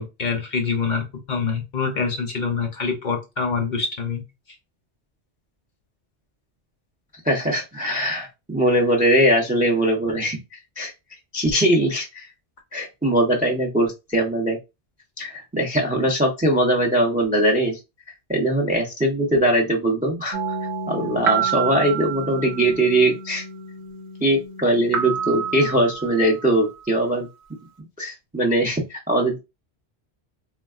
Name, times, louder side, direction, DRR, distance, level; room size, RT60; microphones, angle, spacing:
voice 1, 0.0-4.2, left 5 dB, 50° left, 2 dB, 0.7 m, -25 dB
voice 2, 7.3-10.4 10.8-10.9 11.3-12.3 12.7-14.6 15.2-17.8 18.3-20.5 20.9-23.4 24.2-27.3 28.0-29.4, right 1 dB, 15° right, 1 dB, 0.4 m, -21 dB
sound 1, 20.3-26.8, right 7 dB, 75° right, 0.8 m, -29 dB
3.4 x 2.2 x 2.3 m, 0.24 s
omnidirectional pair, 1.1 m